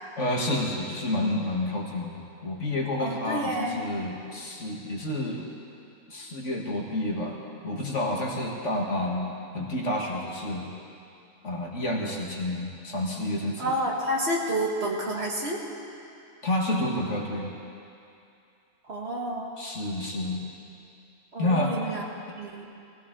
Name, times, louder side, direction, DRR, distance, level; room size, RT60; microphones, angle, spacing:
voice 1, 0.2-5.4 6.1-7.4 7.6-9.3 9.5-10.7 11.4-13.8 16.4-17.5 19.6-20.4 21.4-21.7, left 1 dB, 55° left, -1 dB, 1.9 m, -29 dB
voice 2, 3.0-3.8 13.6-15.6 18.9-19.5 21.3-22.1 22.4-22.7, right 1 dB, 45° right, -2 dB, 1.9 m, -29 dB
19.5 x 16.5 x 3.8 m, 2.6 s
omnidirectional pair, 1.5 m